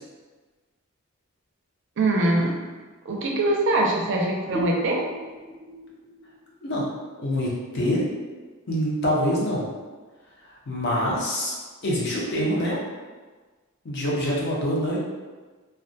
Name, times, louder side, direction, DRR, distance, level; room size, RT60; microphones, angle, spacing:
voice 1, 2.0-2.6 3.1-5.0, right 2 dB, 60° right, 0 dB, 0.5 m, -23 dB
sound 1, 4.5-7.9, right 2 dB, 10° left, 0.3 m, -36 dB
voice 2, 7.2-8.0 8.7-9.6 10.7-11.6 11.8-12.8 13.8-15.0, equal, 55° left, -4 dB, 0.6 m, -25 dB
2.3 x 2.1 x 2.6 m, 1.4 s
head